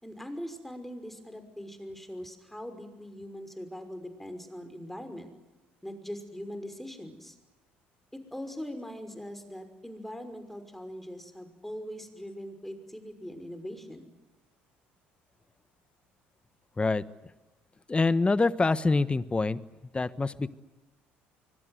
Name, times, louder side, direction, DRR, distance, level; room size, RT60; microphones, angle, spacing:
voice 1, 0.0-5.3 5.8-7.4 8.1-14.1, equal, 5° left, 8 dB, 5.8 m, -41 dB
voice 2, 17.9-19.6 19.9-20.5, left 3 dB, 20° left, 16 dB, 1.3 m, -25 dB
25.0 x 22.5 x 9.4 m, 1.1 s
hypercardioid pair, 60°, 5 cm